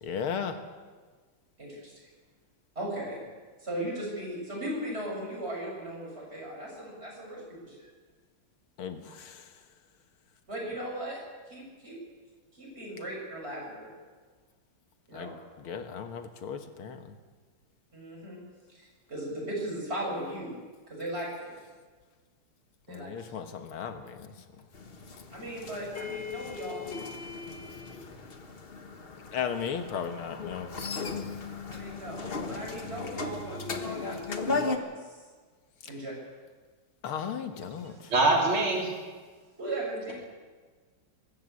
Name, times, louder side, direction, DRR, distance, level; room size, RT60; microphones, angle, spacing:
voice 1, 0.0-0.6 8.8-9.5 15.1-17.1 22.9-24.3 29.3-30.7 35.8-35.9 37.0-38.1, left 7 dB, 90° left, 7 dB, 2.3 m, -36 dB
voice 2, 1.6-1.9 2.8-3.2 3.6-7.9 10.5-11.2 11.5-12.0 12.6-13.9 15.1-15.3 17.9-18.4 18.7-20.5 20.9-21.6 22.9-23.1 25.3-26.9 31.7-34.9 35.8-36.1 39.6-40.1, right 1 dB, 30° right, -3 dB, 7.5 m, -37 dB
sound 1, 24.7-34.8, left 4 dB, 30° left, 1.3 m, -36 dB
voice 3, 38.1-38.9, right 2 dB, 80° right, -1 dB, 4.3 m, -23 dB
23.0 x 13.5 x 8.4 m, 1.4 s
omnidirectional pair, 2.3 m